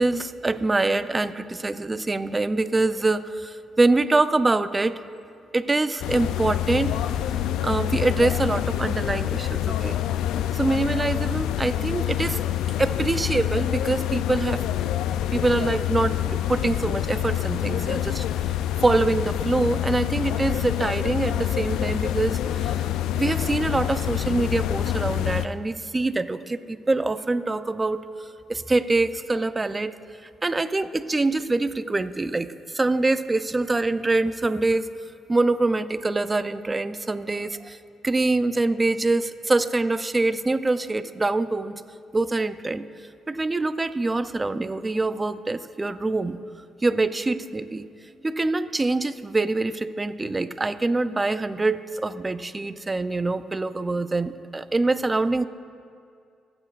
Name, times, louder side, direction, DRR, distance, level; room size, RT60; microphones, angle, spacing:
voice 1, 0.0-5.0 5.5-7.0 7.6-10.0 10.5-12.4 12.8-14.6 15.3-18.2 18.8-22.8 23.1-29.9 30.4-34.9 35.3-37.8 38.0-41.8 42.1-42.8 43.3-46.4 46.8-47.9 48.2-55.5, right 2 dB, 25° right, 12 dB, 0.5 m, -24 dB
sound 1, 6.0-25.5, left 11 dB, 90° left, 0.3 m, -26 dB
25.5 x 8.8 x 2.5 m, 2.3 s
cardioid pair, 75°, 0 cm